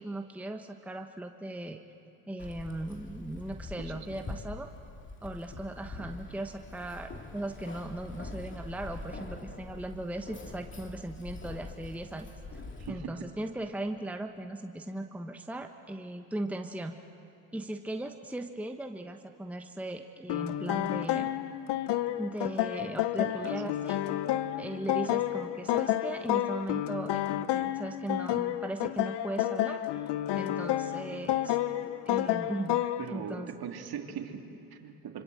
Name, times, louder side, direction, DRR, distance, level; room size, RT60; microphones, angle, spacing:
voice 1, 0.0-1.8 2.3-4.7 5.2-12.6 12.9-17.0 17.5-21.4 22.2-24.0 24.5-30.1 30.4-31.6 32.1-33.5, right 1 dB, 5° right, 5 dB, 1.2 m, -38 dB
Keys jangling, 2.4-12.9, left 3 dB, 25° left, 2.7 m, -44 dB
voice 2, 3.8-4.4 12.8-13.3 23.2-23.7 33.0-35.2, right 7 dB, 50° right, 3 dB, 2.7 m, -41 dB
sound 1, 20.3-33.1, left 13 dB, 60° left, 1.0 m, -30 dB
25.5 x 25.0 x 7.7 m, 2.7 s
hypercardioid pair, 70°, 47 cm